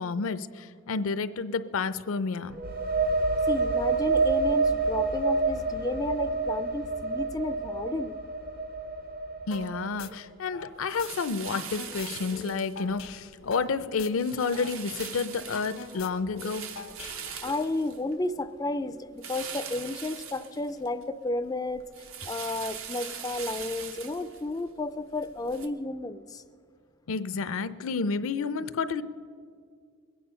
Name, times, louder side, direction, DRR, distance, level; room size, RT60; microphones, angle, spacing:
voice 1, 0.0-2.6 9.5-16.7 27.1-29.0, left 4 dB, 75° left, 14 dB, 0.5 m, -30 dB
sound 1, 2.5-10.1, right 3 dB, 45° right, 0.7 m, -28 dB
voice 2, 3.5-8.2 17.4-21.8 22.2-26.4, left 2 dB, 20° left, 9 dB, 0.3 m, -32 dB
sound 2, 9.5-9.7 10.0-11.1 11.4-14.7 15.0-15.1 15.4-17.5, left 5 dB, 90° left, 1.0 m, -43 dB
sound 3, 10.9-13.1 13.5-13.8 14.2-18.5 19.2-21.0 21.4-25.7, right 7 dB, 75° right, 0.9 m, -41 dB
21.0 x 8.6 x 5.5 m, 2.2 s
head